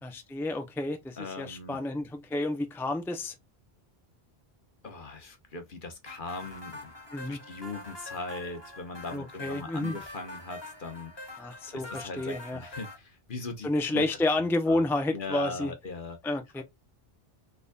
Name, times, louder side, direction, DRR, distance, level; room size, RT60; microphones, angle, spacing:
voice 1, 0.0-3.3 7.1-7.4 9.1-10.0 11.4-12.6 13.6-15.7 16.2-16.6, left 2 dB, 5° left, 0.6 m, -30 dB
voice 2, 1.2-1.8 4.8-6.9 7.3-14.1 14.3-14.8 15.1-16.2, left 3 dB, 55° left, 1.2 m, -40 dB
sound 1, 6.1-13.0, left 1 dB, 25° left, 1.5 m, -44 dB
3.9 x 3.6 x 2.2 m
omnidirectional pair, 1.0 m